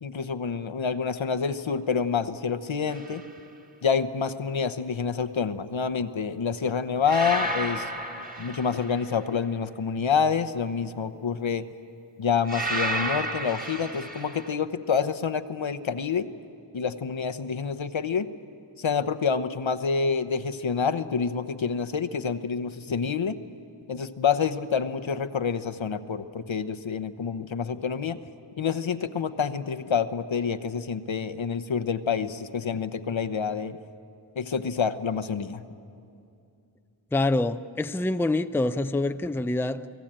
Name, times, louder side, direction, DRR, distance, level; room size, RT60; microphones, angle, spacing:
voice 1, 0.0-3.2 3.8-7.9 8.4-11.7 12.2-16.3 16.7-18.3 18.8-23.4 23.9-28.2 28.6-33.8 34.4-35.6, left 6 dB, 70° left, 1.0 m, -27 dB
sound 1, 2.9-3.2 7.1-9.2 12.5-14.5, right 1 dB, 20° right, 1.9 m, -32 dB
voice 2, 37.1-39.9, left 2 dB, 5° left, 0.5 m, -26 dB
29.0 x 19.0 x 8.9 m
wide cardioid pair, 50°, 48 cm